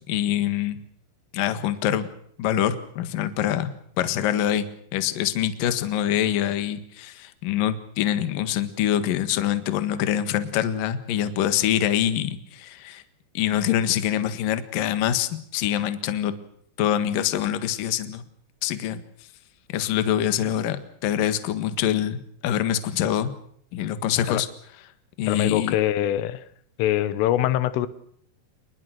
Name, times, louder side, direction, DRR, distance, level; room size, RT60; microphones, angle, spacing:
voice 1, 0.1-0.8 1.3-2.1 2.4-3.7 4.0-4.7 4.9-13.0 13.3-16.3 16.8-18.2 18.6-19.0 19.7-23.3 23.7-24.5 25.2-25.8, left 11 dB, 60° left, 11 dB, 2.7 m, -25 dB
voice 2, 25.3-26.4 26.8-27.9, left 13 dB, 85° left, 15 dB, 3.7 m, -23 dB
28.0 x 21.0 x 6.5 m, 0.65 s
omnidirectional pair, 5.7 m